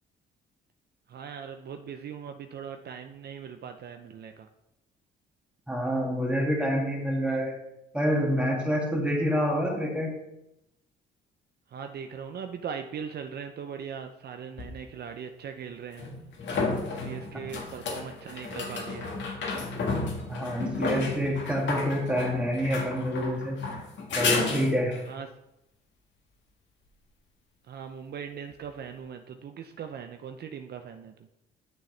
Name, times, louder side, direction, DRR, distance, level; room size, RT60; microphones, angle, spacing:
voice 1, 1.1-4.5 11.7-16.1 17.0-19.1 25.1-25.3 27.7-31.1, right 7 dB, 55° right, 6 dB, 0.6 m, -40 dB
voice 2, 5.7-7.6 7.9-10.1 20.3-23.6 24.2-25.0, equal, 5° right, -1 dB, 2.0 m, -27 dB
sound 1, 14.6-14.7 16.0-25.1 28.5-28.6, left 3 dB, 65° left, 1.6 m, -32 dB
8.6 x 6.4 x 3.3 m, 0.86 s
cardioid pair, 90°, 20 cm